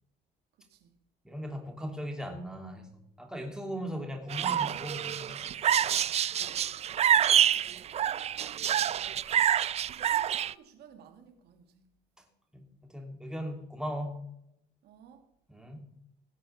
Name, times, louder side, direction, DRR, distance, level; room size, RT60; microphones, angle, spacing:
voice 1, 0.6-1.0 6.3-7.0 7.7-8.9 9.9-11.9 14.8-15.3, right 8 dB, 75° right, 1.9 m, -57 dB
voice 2, 1.2-5.4 12.5-14.3 15.5-15.8, equal, 5° right, 3.1 m, -38 dB
sound 1, 4.3-10.5, right 10 dB, 40° right, 0.4 m, -27 dB
17.5 x 6.5 x 7.0 m
cardioid pair, 110°, 17 cm